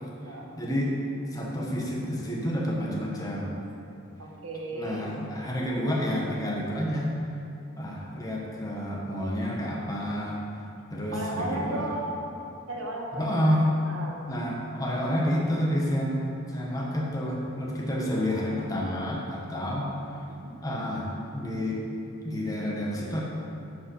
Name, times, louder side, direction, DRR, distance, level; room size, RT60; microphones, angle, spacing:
voice 1, 0.6-0.9 1.3-3.5 4.7-7.1 7.8-10.4 10.9-11.9 13.2-13.7 14.3-19.9 20.6-21.8 22.2-23.2, equal, 20° left, -3 dB, 1.4 m, -29 dB
voice 2, 4.2-5.1 11.1-12.4 12.7-14.3 20.3-20.5, right 1 dB, 90° right, -1 dB, 1.4 m, -35 dB
8.4 x 5.4 x 6.4 m, 2.7 s
head